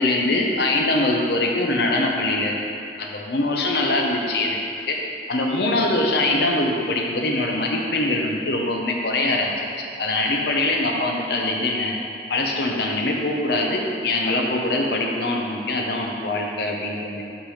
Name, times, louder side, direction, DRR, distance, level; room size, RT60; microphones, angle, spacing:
voice 1, 0.0-2.6 3.0-5.0 5.3-9.5 10.0-11.9 12.3-17.2, left 2 dB, 55° left, 0 dB, 0.7 m, -23 dB
6.2 x 3.3 x 5.6 m, 2.6 s
head